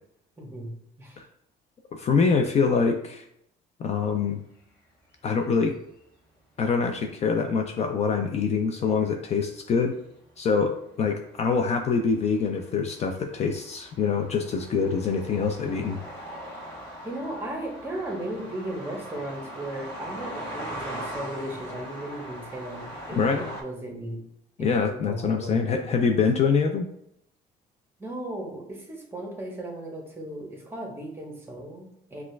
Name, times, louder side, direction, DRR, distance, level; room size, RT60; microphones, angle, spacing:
voice 1, 0.4-0.7 1.0-1.3 17.0-24.2 24.6-26.2 28.0-32.2, right 1 dB, 15° right, 1 dB, 1.0 m, -36 dB
voice 2, 1.9-3.2 3.8-4.4 5.2-5.7 6.6-10.0 10.4-16.0 23.2-23.5 24.6-26.9, left 5 dB, 40° left, 5 dB, 0.4 m, -25 dB
sound 1, 8.6-9.7 10.4-23.6, right 1 dB, 15° left, 1.4 m, -40 dB
6.0 x 2.4 x 2.2 m, 0.75 s
cardioid pair, 110°, 17 cm